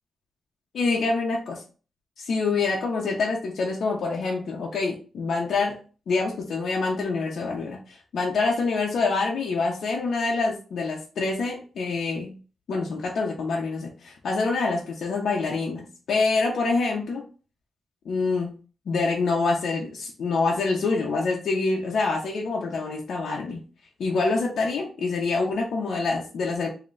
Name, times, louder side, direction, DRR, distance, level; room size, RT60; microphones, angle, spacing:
voice 1, 0.7-1.6 2.2-5.7 6.1-12.3 12.7-17.2 18.0-18.5 18.9-23.6 24.0-26.7, left 3 dB, 65° left, -3 dB, 0.8 m, -26 dB
3.9 x 2.9 x 3.2 m, 0.37 s
wide cardioid pair, 165°, 0 cm